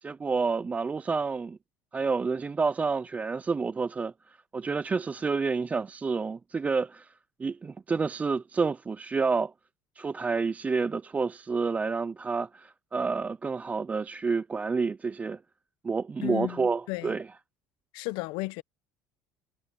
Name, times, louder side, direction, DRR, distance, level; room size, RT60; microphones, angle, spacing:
voice 1, 0.0-1.6 1.9-7.1 7.4-9.5 10.0-15.4 15.8-17.3, right 4 dB, 20° right, 0.3 m, -29 dB
voice 2, 16.2-17.2 17.9-18.6, left 22 dB, 75° left, 0.8 m, -34 dB
cardioid pair, 120°, 8 cm